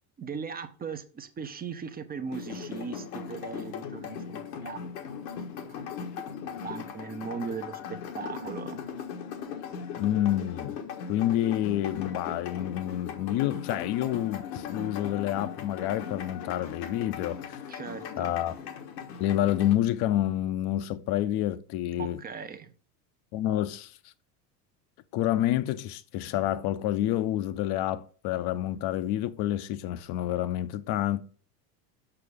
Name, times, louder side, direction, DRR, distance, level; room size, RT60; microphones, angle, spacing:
voice 1, 0.2-4.8 5.7-5.9 6.2-8.8 17.7-18.4 22.0-22.7, right 6 dB, 20° right, 0.6 m, -39 dB
sound 1, 2.3-19.8, left 7 dB, 85° left, 1.4 m, -39 dB
voice 2, 10.0-10.8 11.1-17.6 18.2-18.5 19.2-22.2 23.3-23.9 25.1-31.2, left 12 dB, 50° left, 0.7 m, -28 dB
6.9 x 5.7 x 3.6 m
supercardioid pair, 115°, 49 cm